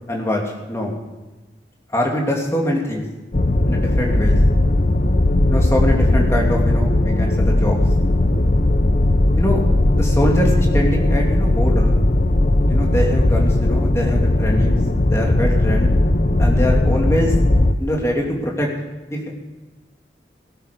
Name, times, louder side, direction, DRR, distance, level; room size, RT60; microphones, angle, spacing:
voice 1, 0.1-0.9 1.9-3.0 3.7-4.4 5.5-7.9 9.4-9.6 10.0-12.0 12.7-14.8 15.0-15.9 16.4-17.3 17.8-18.7 19.1-19.3, left 1 dB, 15° left, -1 dB, 2.8 m, -23 dB
sound 1, 3.3-17.7, left 1 dB, 45° left, 0.8 m, -17 dB
17.5 x 12.5 x 5.3 m, 1.2 s
head